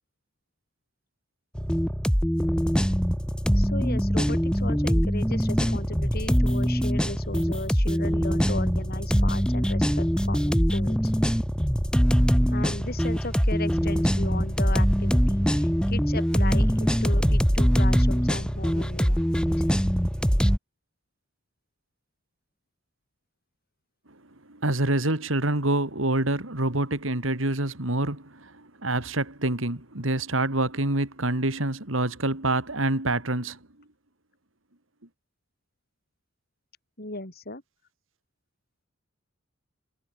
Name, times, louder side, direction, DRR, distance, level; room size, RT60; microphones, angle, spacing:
sound 1, 1.6-20.6, equal, 5° left, 5.8 m, -23 dB
voice 1, 3.5-11.1 12.5-19.5 37.0-37.6, left 2 dB, 50° left, 7.1 m, -36 dB
voice 2, 24.5-33.6, right 2 dB, 80° right, 3.6 m, -26 dB
head